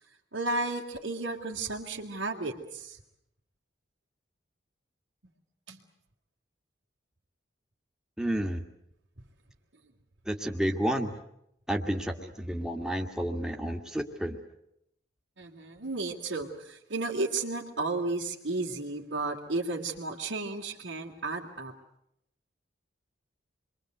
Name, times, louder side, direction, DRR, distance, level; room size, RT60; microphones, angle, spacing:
voice 1, 0.3-3.0 5.7-5.8 15.4-21.7, right 3 dB, 85° right, -5 dB, 3.0 m, -33 dB
voice 2, 8.2-8.6 10.3-11.1 11.7-14.4, equal, 5° right, 3 dB, 1.9 m, -30 dB
28.0 x 23.0 x 8.0 m, 0.77 s
head